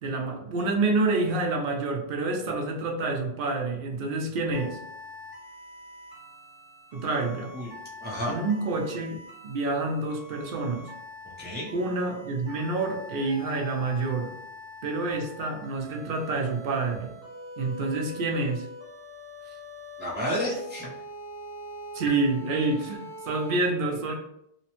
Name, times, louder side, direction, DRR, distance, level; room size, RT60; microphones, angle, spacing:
voice 1, 0.0-4.8 6.9-7.5 8.3-10.9 11.7-14.3 14.8-17.1 17.6-18.7 21.9-24.1, right 3 dB, 65° right, 2 dB, 0.7 m, -28 dB
sound 1, 4.5-23.6, left 1 dB, 35° right, 1.1 m, -44 dB
voice 2, 8.0-8.3 11.4-11.7 20.0-20.9 24.1-24.2, equal, 15° right, -5 dB, 0.4 m, -31 dB
2.9 x 2.0 x 2.9 m, 0.76 s
omnidirectional pair, 1.1 m